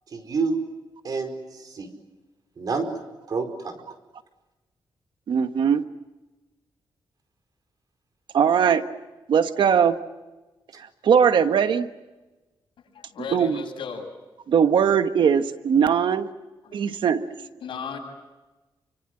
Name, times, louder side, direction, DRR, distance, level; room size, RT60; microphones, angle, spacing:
voice 1, 0.1-0.6 1.0-1.9 2.6-2.9 3.3-3.7, right 4 dB, 50° right, 6 dB, 4.8 m, -28 dB
voice 2, 5.3-5.8 8.3-8.8 9.3-10.0 10.8-11.9 13.3-13.6 14.5-16.3 16.7-17.3, right 7 dB, 70° right, 9 dB, 1.3 m, -20 dB
voice 3, 12.9-14.1 16.6-16.8 17.6-18.0, left 5 dB, 75° left, 2 dB, 7.8 m, -35 dB
29.5 x 25.5 x 7.8 m, 1.1 s
wide cardioid pair, 150°, 9 cm